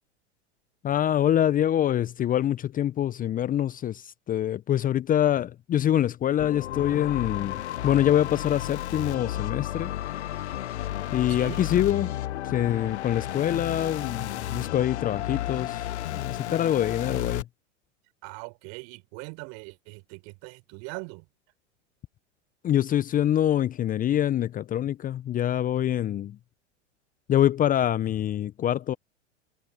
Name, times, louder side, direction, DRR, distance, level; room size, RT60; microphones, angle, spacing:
voice 1, 0.8-9.9 11.1-12.1 12.4-17.4 22.6-26.4 27.3-28.9, left 11 dB, 25° left, 0.9 m, -25 dB
sound 1, 6.4-17.4, left 13 dB, 65° left, 1.0 m, -32 dB
voice 2, 11.3-11.6 18.2-21.3, right 37 dB, 50° right, 5.0 m, -41 dB
figure-of-eight pair, 95°, 36 cm